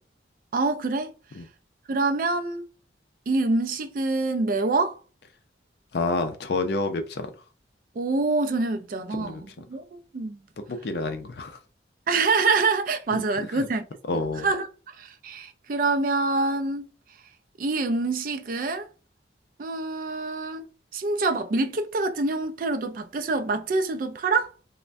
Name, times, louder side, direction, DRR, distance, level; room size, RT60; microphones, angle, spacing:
voice 1, 0.5-1.1 1.9-2.6 3.3-5.0 8.0-10.4 12.1-13.8 14.4-14.7 15.0-16.9 17.6-18.9 19.6-20.7 20.9-24.5, right 3 dB, 45° right, 0.3 m, -26 dB
voice 2, 5.9-7.3 9.2-9.6 10.7-11.6 13.1-13.7 14.1-14.5, left 3 dB, 60° left, 0.4 m, -29 dB
3.2 x 2.1 x 2.5 m
head